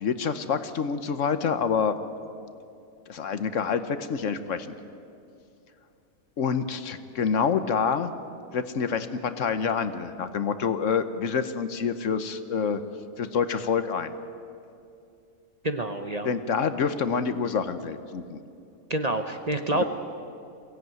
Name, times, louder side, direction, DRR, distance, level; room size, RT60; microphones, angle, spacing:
voice 1, 0.0-1.9 3.1-4.7 6.4-8.1 8.5-12.8 13.2-14.1 16.2-18.4 19.8-19.9, left 6 dB, 65° left, 11 dB, 1.2 m, -27 dB
voice 2, 15.6-16.3 18.9-19.8, right 1 dB, 35° right, 7 dB, 0.9 m, -27 dB
22.0 x 16.5 x 9.3 m, 2.5 s
omnidirectional pair, 1.5 m